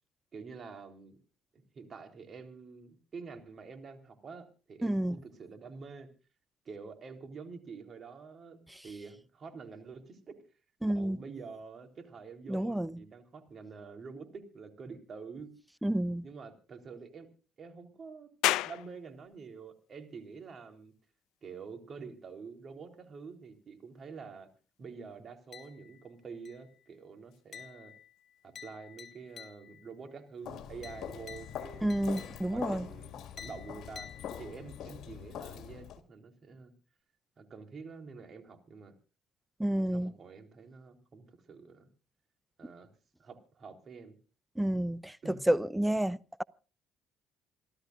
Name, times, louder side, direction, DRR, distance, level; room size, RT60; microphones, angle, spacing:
voice 1, 0.3-1.2 1.5-6.1 6.7-10.3 10.9-15.5 16.2-17.3 17.6-18.3 18.6-20.9 21.4-24.5 24.8-27.9 28.6-32.0 32.5-34.1 34.4-36.7 37.4-38.9 39.7-41.9 42.6-42.9 43.2-44.2 45.2-45.5, right 5 dB, 45° right, 3.8 m, -47 dB
voice 2, 4.8-5.2 8.7-8.8 10.8-11.2 12.5-13.0 15.8-16.2 31.8-32.8 39.6-40.1 44.6-46.4, right 1 dB, 5° right, 0.7 m, -30 dB
sound 1, 18.4-31.5, left 16 dB, 85° left, 0.6 m, -42 dB
sound 2, 25.5-26.1 26.4-26.9 27.5-29.9 30.8-32.7 33.4-34.8, left 8 dB, 50° left, 3.0 m, -51 dB
Walk footsteps, 30.4-36.0, left 9 dB, 70° left, 1.9 m, -43 dB
28.0 x 13.0 x 2.5 m
cardioid pair, 85°, 0 cm